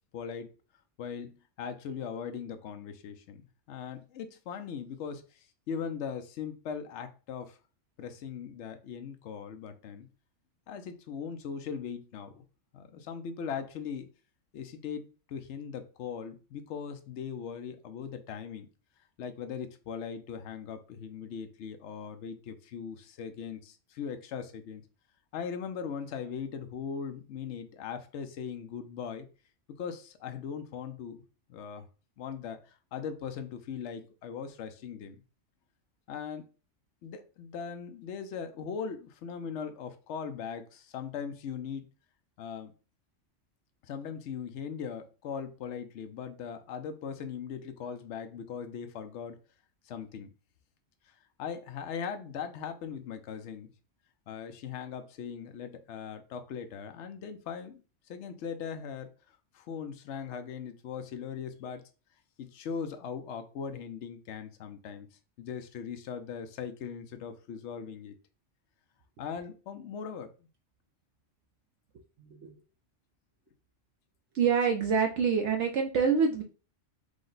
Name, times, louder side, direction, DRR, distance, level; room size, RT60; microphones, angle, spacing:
voice 1, 0.1-0.5 1.0-3.4 3.7-7.6 8.0-10.1 10.7-12.4 12.7-14.1 14.5-18.7 19.2-24.8 25.3-29.3 29.8-31.2 31.5-31.8 32.2-35.2 36.1-36.5 37.0-41.9 42.4-42.7 43.8-49.4 49.9-50.3 51.4-53.7 54.3-57.8 58.1-59.1 59.5-61.8 62.4-65.1 65.4-68.2 69.2-70.3, left 7 dB, 70° left, 7 dB, 0.9 m, -39 dB
voice 2, 72.2-72.6 74.3-76.4, right 6 dB, 70° right, 3 dB, 0.9 m, -26 dB
4.9 x 2.1 x 3.8 m, 0.35 s
omnidirectional pair, 1.3 m